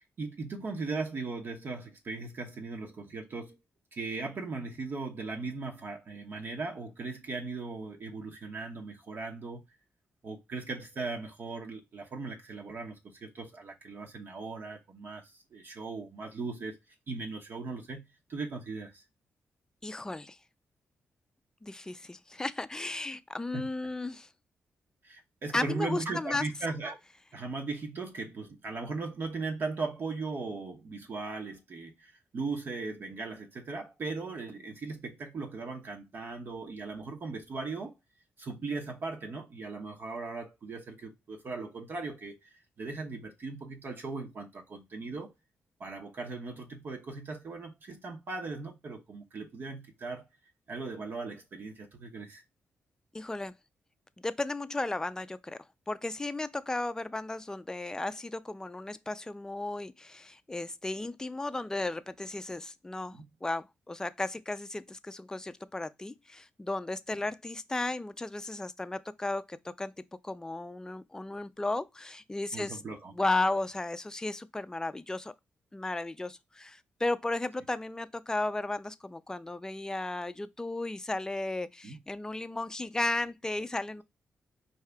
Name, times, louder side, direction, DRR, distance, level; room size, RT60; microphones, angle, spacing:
voice 1, 0.0-3.6 3.9-9.6 10.2-16.8 17.1-18.0 18.3-19.0 23.5-23.7 25.0-27.0 27.3-37.9 38.4-45.3 45.8-50.3 50.7-52.4 63.1-63.2 72.5-73.1 81.8-82.0, right 3 dB, 55° right, 1.0 m, -38 dB
voice 2, 19.8-20.4 21.6-24.3 25.5-26.4 53.1-53.5 54.2-55.6 55.9-69.9 70.2-72.8 73.1-75.3 75.7-84.0, left 2 dB, 15° left, 0.4 m, -34 dB
4.6 x 2.8 x 3.4 m
cardioid pair, 75°, 4 cm